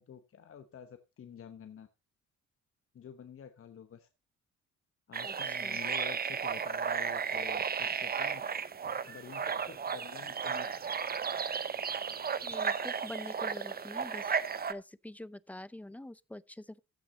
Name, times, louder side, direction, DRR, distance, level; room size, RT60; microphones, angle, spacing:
voice 1, 0.0-1.9 2.9-4.1 5.1-8.4 8.8-10.7, left 8 dB, 45° left, 1.0 m, -49 dB
sound 1, 5.1-14.7, right 6 dB, 30° right, 0.8 m, -34 dB
voice 2, 5.2-5.8 12.4-14.3 14.7-16.8, left 1 dB, 5° left, 0.5 m, -45 dB
14.5 x 6.1 x 4.0 m
cardioid pair, 90°, 30 cm